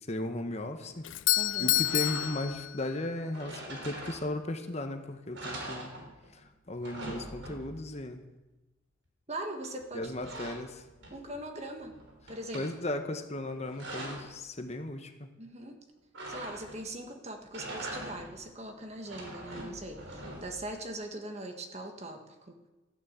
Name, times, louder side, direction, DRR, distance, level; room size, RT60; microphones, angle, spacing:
voice 1, 0.1-1.1 1.6-5.9 6.3-6.4 6.7-8.2 9.9-10.8 12.5-15.3, left 1 dB, 35° left, 7 dB, 1.1 m, -36 dB
Doorbell, 1.0-3.2, left 16 dB, 75° left, 0.5 m, -29 dB
voice 2, 1.3-1.8 9.3-10.5 11.1-11.9 12.3-12.7 15.4-15.8 16.3-22.6, right 1 dB, 35° right, 4 dB, 1.7 m, -41 dB
sound 1, 1.8-2.6 3.3-4.6 5.0-5.1 5.3-6.4 6.7-7.9 9.6-11.4 11.8-12.7 13.4-14.4 16.1-16.9 17.4-18.4 18.9-20.7, right 1 dB, 65° right, 4.0 m, -43 dB
14.0 x 10.5 x 8.0 m, 1.1 s
head